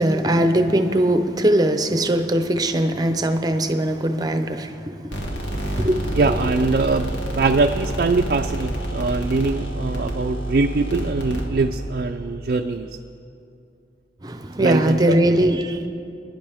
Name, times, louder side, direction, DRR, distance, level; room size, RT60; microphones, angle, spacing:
voice 1, 0.0-6.4 14.2-15.9, right 1 dB, 20° right, 0.7 m, -21 dB
sound 1, 5.1-11.9, right 1 dB, 80° left, 1.9 m, -28 dB
voice 2, 6.2-12.9 14.6-15.0 15.3-15.4, right 3 dB, 50° right, 0.4 m, -22 dB
25.0 x 10.5 x 3.5 m
head